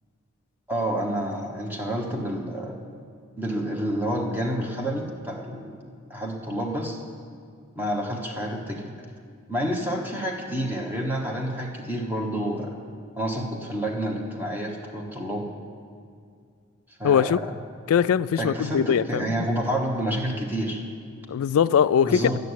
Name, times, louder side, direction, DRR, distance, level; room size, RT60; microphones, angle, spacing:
voice 1, 0.7-2.8 3.4-5.8 6.1-7.0 7.7-9.0 9.5-12.7 13.2-15.5 17.0-17.6 18.4-20.8 22.0-22.4, right 1 dB, 10° right, 0 dB, 1.2 m, -29 dB
voice 2, 17.0-17.4 17.9-19.2 21.3-22.3, left 8 dB, 70° left, 17 dB, 0.3 m, -21 dB
12.5 x 6.7 x 9.7 m, 2.2 s
head